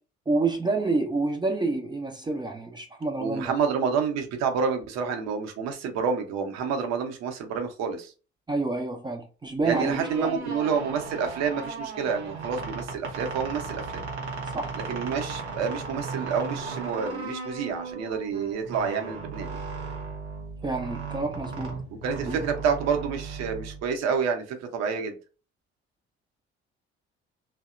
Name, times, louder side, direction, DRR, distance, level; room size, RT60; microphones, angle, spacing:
voice 1, 0.3-3.5 8.5-10.5 14.5-14.8 20.6-21.8 22.3-22.4, right 3 dB, 15° right, 0.4 m, -28 dB
voice 2, 3.2-8.1 9.6-14.0 14.9-19.6 22.0-25.2, right 6 dB, 50° right, 0.7 m, -28 dB
sound 1, 9.6-24.2, right 4 dB, 85° right, 0.6 m, -36 dB
2.7 x 2.1 x 2.4 m
figure-of-eight pair, 50°, 33 cm